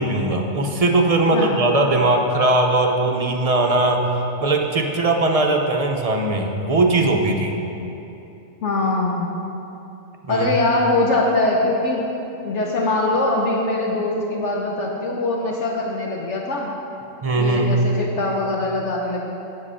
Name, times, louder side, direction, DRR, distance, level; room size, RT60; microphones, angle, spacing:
voice 1, 0.0-4.1 4.4-7.5 10.2-10.5 17.2-17.9, right 2 dB, 40° right, 2 dB, 0.6 m, -19 dB
voice 2, 8.6-9.3 10.3-12.0 12.4-16.7 17.3-19.2, left 2 dB, 65° left, -2 dB, 1.1 m, -22 dB
7.6 x 7.5 x 5.6 m, 2.9 s
omnidirectional pair, 1.4 m